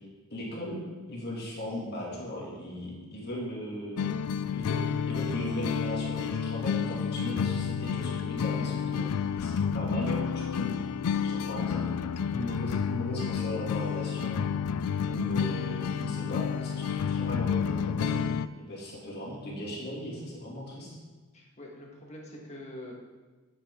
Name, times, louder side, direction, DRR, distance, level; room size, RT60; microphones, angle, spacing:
voice 1, 0.3-0.8 1.1-4.1 4.5-9.0 9.4-10.8 11.2-11.8 12.3-14.5 15.0-18.2 18.6-21.0, left 1 dB, 50° left, -4 dB, 2.7 m, -37 dB
sound 1, 4.0-18.5, left 7 dB, 85° left, 0.4 m, -30 dB
voice 2, 21.3-22.9, left 1 dB, 30° left, -1 dB, 1.7 m, -46 dB
11.5 x 8.5 x 3.8 m, 1.3 s
head